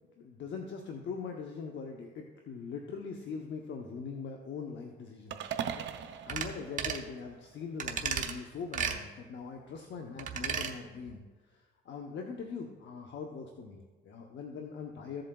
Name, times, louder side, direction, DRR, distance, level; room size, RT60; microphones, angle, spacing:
voice 1, 0.2-5.6 5.9-11.2 11.5-15.2, left 5 dB, 65° left, 2 dB, 0.8 m, -42 dB
sound 1, 5.3-7.6, right 8 dB, 65° right, 0.6 m, -40 dB
sound 2, 6.3-6.5 6.8-7.1 7.8-8.3 8.7-9.0 10.2-10.7 11.1-11.2, right 7 dB, 40° right, 0.9 m, -33 dB
14.5 x 7.7 x 2.3 m, 1.3 s
cardioid pair, 90°, 20 cm